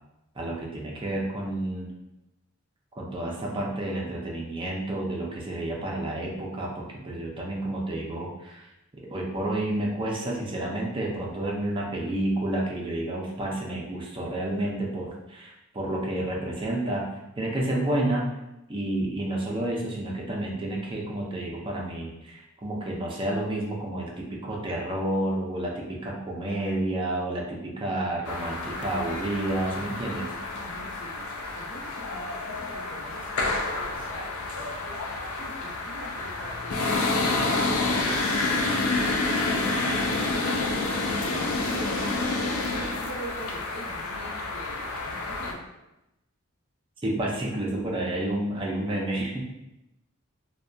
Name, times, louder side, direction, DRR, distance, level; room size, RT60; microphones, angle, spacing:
voice 1, 0.4-1.9 3.0-8.7 9.1-17.1 17.4-18.3 18.7-30.3 47.0-49.4, right 1 dB, 25° right, -3 dB, 0.5 m, -30 dB
sound 1, 28.2-45.5, left 2 dB, 80° left, 0.4 m, -29 dB
voice 2, 30.6-31.2 31.5-35.0 35.3-38.1 39.0-40.4 41.2-45.6, right 1 dB, 60° left, -5 dB, 0.8 m, -44 dB
2.6 x 2.2 x 2.3 m, 0.92 s
head